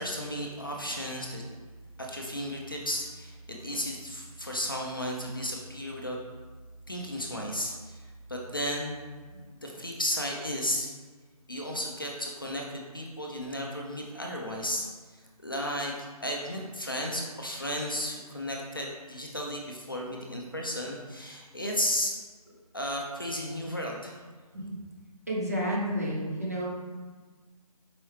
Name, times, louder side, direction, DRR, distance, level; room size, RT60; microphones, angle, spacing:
voice 1, 0.0-1.4 2.0-6.2 6.9-9.0 9.5-10.9 11.5-14.9 15.4-22.1 22.5-24.2, equal, 35° left, -1 dB, 0.4 m, -34 dB
voice 2, 25.3-26.7, equal, 25° right, -4 dB, 0.5 m, -31 dB
4.6 x 2.9 x 3.1 m, 1.5 s
hypercardioid pair, 175°, 20 cm